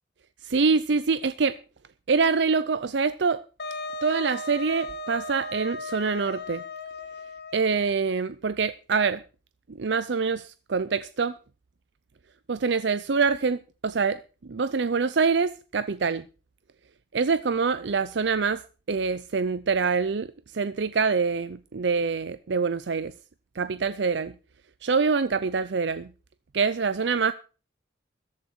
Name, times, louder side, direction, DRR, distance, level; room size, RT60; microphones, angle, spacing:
voice 1, 0.4-1.6 2.1-3.4 4.0-6.6 7.5-9.2 9.8-11.3 12.5-16.2 17.1-18.6 18.9-23.1 23.6-24.3 24.8-26.1 26.5-27.3, right 5 dB, 70° right, 0.6 m, -25 dB
Wind instrument woodwind instrument, 3.6-8.0, left 2 dB, 60° left, 1.3 m, -36 dB
14.0 x 11.5 x 4.4 m
head